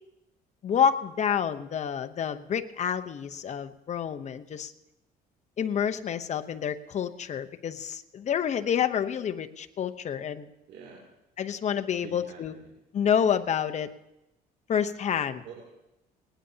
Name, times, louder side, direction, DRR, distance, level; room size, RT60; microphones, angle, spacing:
voice 1, 0.6-4.7 5.6-10.4 11.4-12.5 12.9-13.9 14.7-15.4, left 8 dB, 45° left, 8 dB, 0.8 m, -28 dB
voice 2, 10.7-11.0 12.0-12.7 15.4-15.6, right 6 dB, 80° right, -1 dB, 2.9 m, -46 dB
19.0 x 19.0 x 2.8 m, 0.91 s
cardioid pair, 110°, 17 cm